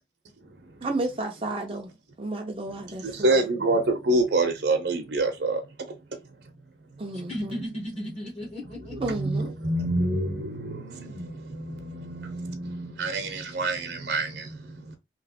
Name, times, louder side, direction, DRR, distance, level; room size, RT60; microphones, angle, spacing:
voice 1, 0.8-1.9 2.2-3.4 7.0-7.6 8.9-9.5, right 2 dB, 30° right, 0.5 m, -32 dB
voice 2, 2.9-5.6 9.0-15.0, right 2 dB, 65° right, 0.7 m, -27 dB
voice 3, 7.1-9.1, equal, 35° left, 0.9 m, -35 dB
3.0 x 2.8 x 2.8 m
head